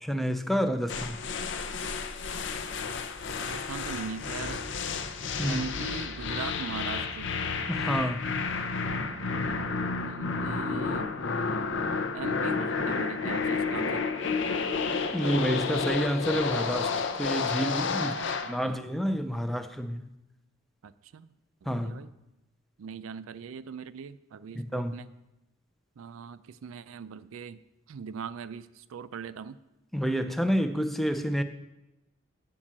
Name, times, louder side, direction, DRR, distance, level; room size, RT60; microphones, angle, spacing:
voice 1, 0.0-1.2 5.4-5.6 7.7-8.4 15.1-18.2 18.5-20.1 21.7-21.9 24.5-25.0 29.9-31.4, equal, ahead, 0.4 m, -29 dB
sound 1, 0.9-18.6, left 4 dB, 60° left, 0.6 m, -31 dB
voice 2, 3.3-4.7 5.4-7.3 9.4-11.1 12.1-14.0 17.9-18.8 20.8-21.3 21.6-22.1 22.8-25.1 26.0-27.6 27.9-29.6, right 6 dB, 75° right, 0.4 m, -41 dB
8.7 x 5.3 x 7.4 m
head